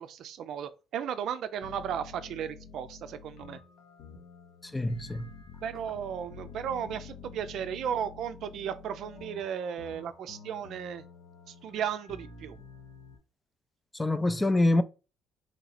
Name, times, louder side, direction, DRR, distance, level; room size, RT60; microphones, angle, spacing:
voice 1, 0.0-3.6 5.6-11.0 11.5-12.6, right 8 dB, 65° right, 0.4 m, -35 dB
sound 1, 1.6-13.2, left 5 dB, 75° left, 0.8 m, -49 dB
voice 2, 4.7-5.3 13.9-14.8, left 2 dB, 15° left, 0.3 m, -25 dB
3.2 x 2.8 x 4.0 m
cardioid pair, 100°, 0 cm